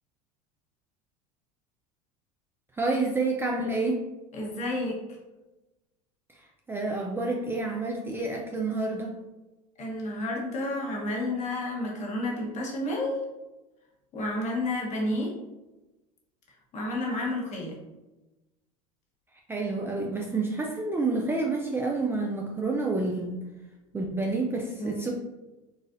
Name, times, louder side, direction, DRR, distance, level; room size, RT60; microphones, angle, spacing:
voice 1, 2.7-4.0 6.3-9.1 19.5-23.4 23.9-25.1, right 3 dB, 10° right, -1 dB, 0.3 m, -29 dB
voice 2, 4.3-4.9 9.8-13.2 14.1-15.3 16.7-17.7 24.8-25.1, left 1 dB, 40° left, -2 dB, 1.2 m, -30 dB
4.0 x 2.4 x 2.5 m, 1.1 s
hypercardioid pair, 95°, 19 cm